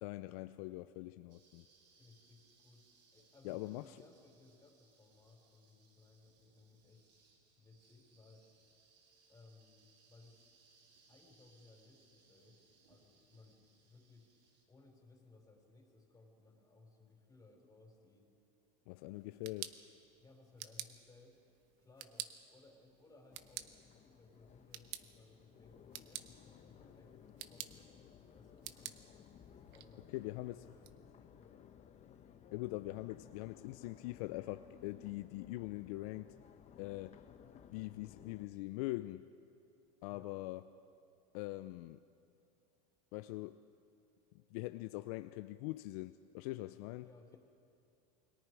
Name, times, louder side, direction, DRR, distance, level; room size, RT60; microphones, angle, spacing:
voice 1, 0.0-1.6 3.4-3.8 18.9-19.8 30.1-30.6 32.5-36.3 36.8-37.2 37.7-39.2 40.0-40.6 41.3-42.0 43.1-43.6 44.3-47.1, left 18 dB, 65° left, 11 dB, 0.6 m, -43 dB
sound 1, 1.3-14.7, right 4 dB, 90° right, 3.4 m, -70 dB
voice 2, 1.9-7.0 7.6-8.5 9.3-10.4 11.1-14.3 14.7-18.3 19.1-19.6 20.2-21.4 21.8-29.0 29.7-31.6 40.1-40.3 47.0-47.4, left 3 dB, 15° left, 2 dB, 4.7 m, -63 dB
sound 2, 19.1-30.9, right 13 dB, 55° right, 1.1 m, -52 dB
Crowd, 23.3-38.4, left 8 dB, 35° left, 1.2 m, -59 dB
28.5 x 22.0 x 4.8 m, 2.5 s
supercardioid pair, 110°, 21 cm